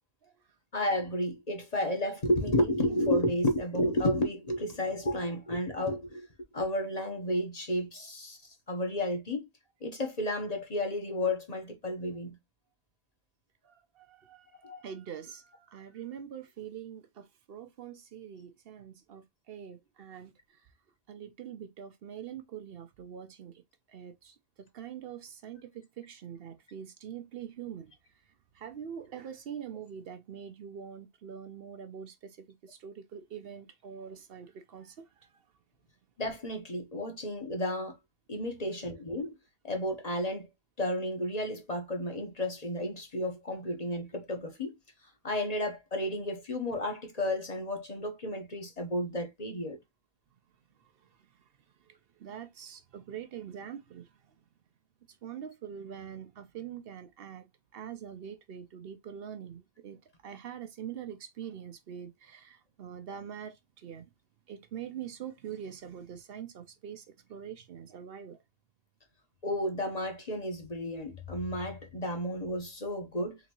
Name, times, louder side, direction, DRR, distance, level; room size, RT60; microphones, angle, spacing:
voice 1, 0.7-6.3 6.5-9.5 9.8-12.4 14.6-14.8 36.2-38.0 38.3-39.3 39.6-40.5 40.8-44.7 45.2-49.8 69.4-73.4, left 1 dB, 40° left, 1.1 m, -32 dB
voice 2, 13.6-20.7 21.1-23.6 23.9-27.9 28.3-35.5 50.8-51.4 51.7-54.4 55.1-64.0 64.5-68.4, right 8 dB, 65° right, 0.8 m, -44 dB
3.9 x 3.5 x 2.9 m
omnidirectional pair, 1.1 m